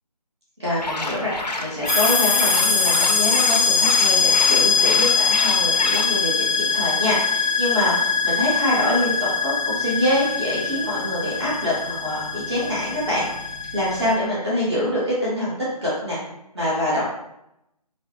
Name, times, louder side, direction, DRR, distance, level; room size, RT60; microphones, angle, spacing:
voice 1, 0.6-13.3 13.7-16.2 16.5-17.1, left 1 dB, 45° right, -7 dB, 1.0 m, -25 dB
sound 1, 0.8-6.1, left 2 dB, 90° left, 0.5 m, -29 dB
sound 2, 1.9-14.1, left 4 dB, 5° left, 0.6 m, -22 dB
3.4 x 2.0 x 2.7 m, 0.83 s
figure-of-eight pair, 155°, 21 cm